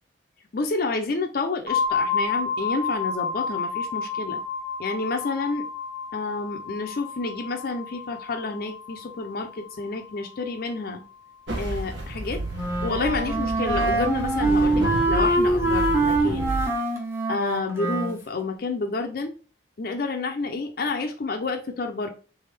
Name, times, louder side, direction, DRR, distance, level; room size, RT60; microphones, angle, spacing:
voice 1, 0.5-4.4 4.8-5.6 6.1-11.0 11.6-12.4 12.8-16.6 17.3-19.3 19.8-22.1, left 3 dB, 50° left, 4 dB, 0.5 m, -29 dB
sound 1, 1.7-11.3, left 5 dB, 35° right, 1.2 m, -31 dB
sound 2, 11.5-16.7, right 2 dB, 80° right, 1.2 m, -31 dB
Wind instrument woodwind instrument, 12.5-18.2, right 2 dB, 15° right, 0.7 m, -24 dB
3.5 x 3.4 x 3.2 m, 0.37 s
head